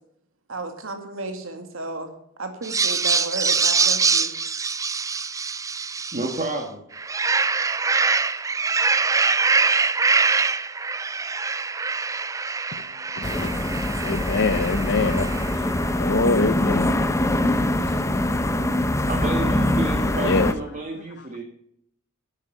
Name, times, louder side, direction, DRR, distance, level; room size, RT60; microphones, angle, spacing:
voice 1, 0.5-2.1 2.4-4.3, right 2 dB, 70° right, 2.2 m, -33 dB
sound 1, 2.6-6.5 6.9-15.6, right 4 dB, 15° right, 0.4 m, -24 dB
voice 2, 6.1-6.8 19.0-21.4, right 2 dB, 40° right, 1.7 m, -30 dB
voice 3, 12.7-15.3 16.0-17.1 20.2-20.5, left 3 dB, 55° left, 0.8 m, -25 dB
sound 2, 13.2-20.5, left 1 dB, 15° left, 0.8 m, -23 dB
11.0 x 8.4 x 6.6 m
head